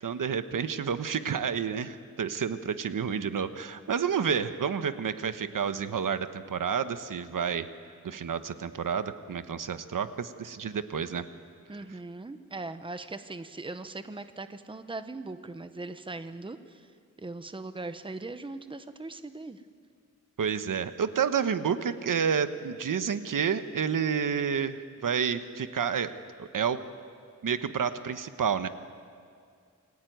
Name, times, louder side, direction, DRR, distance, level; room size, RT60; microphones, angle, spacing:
voice 1, 0.0-7.7 8.0-11.3 20.4-26.8 27.4-28.7, right 7 dB, 85° right, 11 dB, 1.2 m, -30 dB
voice 2, 11.7-16.9 17.2-19.6, right 2 dB, 15° right, 10 dB, 0.9 m, -40 dB
28.5 x 21.0 x 9.4 m, 2.2 s
wide cardioid pair, 170°, 31 cm